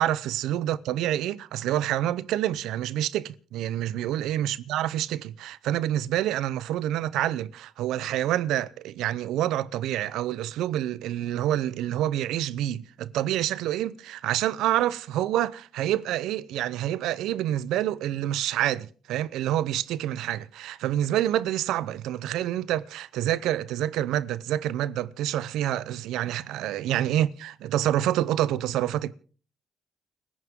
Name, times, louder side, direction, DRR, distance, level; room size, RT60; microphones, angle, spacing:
voice 1, 0.0-29.1, right 12 dB, 90° right, 0.7 m, -27 dB
29.5 x 11.0 x 3.7 m
cardioid pair, 90°, 0 cm